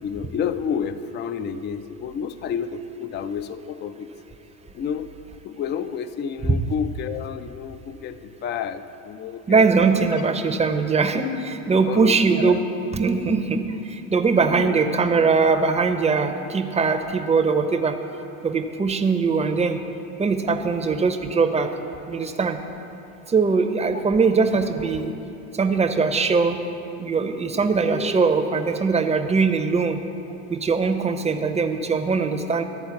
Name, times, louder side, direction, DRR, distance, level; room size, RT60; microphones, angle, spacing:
voice 1, 0.0-4.1 4.7-5.1 5.4-10.2 11.6-12.6 14.3-14.8, left 7 dB, 25° left, 12 dB, 0.4 m, -30 dB
voice 2, 9.5-12.6 12.9-18.0 18.4-19.8 20.2-21.7 22.1-22.6 23.3-25.1 25.5-26.6 27.0-30.0 30.5-32.6, right 4 dB, 15° right, 6 dB, 0.6 m, -21 dB
12.0 x 4.3 x 7.0 m, 2.9 s
hypercardioid pair, 80°, 42 cm